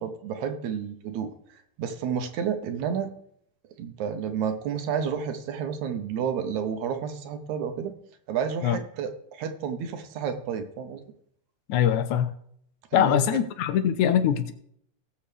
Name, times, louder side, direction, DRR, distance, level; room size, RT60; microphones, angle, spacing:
voice 1, 0.0-1.3 1.8-3.1 3.8-7.9 8.3-11.0 12.9-13.3, right 7 dB, 75° right, 8 dB, 2.3 m, -30 dB
voice 2, 11.7-12.3 12.9-14.5, left 9 dB, 85° left, 9 dB, 2.2 m, -22 dB
18.5 x 7.1 x 3.4 m, 0.67 s
omnidirectional pair, 3.4 m